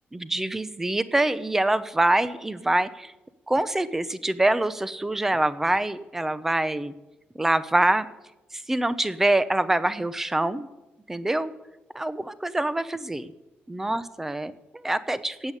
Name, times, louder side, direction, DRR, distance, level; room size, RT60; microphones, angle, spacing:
voice 1, 0.1-3.1 3.5-6.9 7.3-8.1 8.5-10.7 11.1-11.5 11.9-13.3 13.7-15.5, right 1 dB, 10° right, 15 dB, 0.7 m, -25 dB
15.5 x 8.4 x 9.8 m, 0.98 s
wide cardioid pair, 170°, 4 cm